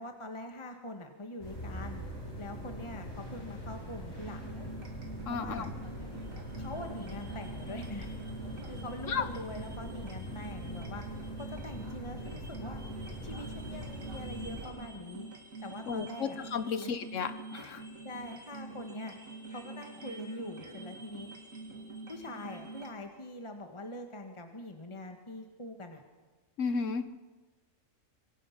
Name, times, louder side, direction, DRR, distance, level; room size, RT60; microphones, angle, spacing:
voice 1, 0.0-2.0 2.4-4.7 5.3-5.7 6.6-8.1 8.7-11.0 11.4-12.8 13.2-15.3 15.6-16.9 18.0-19.2 19.5-21.3 22.1-26.0, left 1 dB, 25° left, 5 dB, 1.5 m, -43 dB
sound 1, 1.4-14.7, equal, 50° left, 8.2 m, -42 dB
sound 2, 4.2-22.9, right 2 dB, 85° right, 3.1 m, -46 dB
voice 2, 5.3-5.7 9.1-9.3 15.9-17.8 26.6-27.1, left 5 dB, 70° left, 12 dB, 1.4 m, -33 dB
25.5 x 24.0 x 5.9 m, 1.3 s
omnidirectional pair, 1.4 m